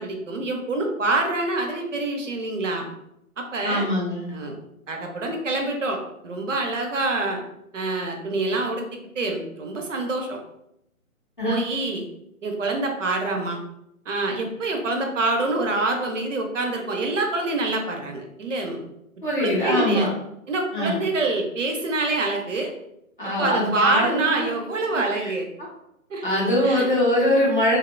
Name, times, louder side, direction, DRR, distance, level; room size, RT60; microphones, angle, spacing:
voice 1, 0.0-2.9 3.4-3.9 4.3-4.6 4.9-6.0 6.2-7.4 7.7-8.8 9.2-10.4 11.4-12.0 12.4-13.6 14.1-18.9 19.4-20.1 20.5-22.7 23.4-25.5 26.1-26.9, right 2 dB, 60° right, 3 dB, 0.6 m, -26 dB
voice 2, 3.6-4.3 11.4-11.6 19.2-20.1 20.7-21.0 23.2-24.5 24.9-25.3 26.2-27.8, left 1 dB, 35° left, -5 dB, 0.6 m, -22 dB
2.6 x 2.0 x 2.5 m, 0.80 s
hypercardioid pair, 170°, 43 cm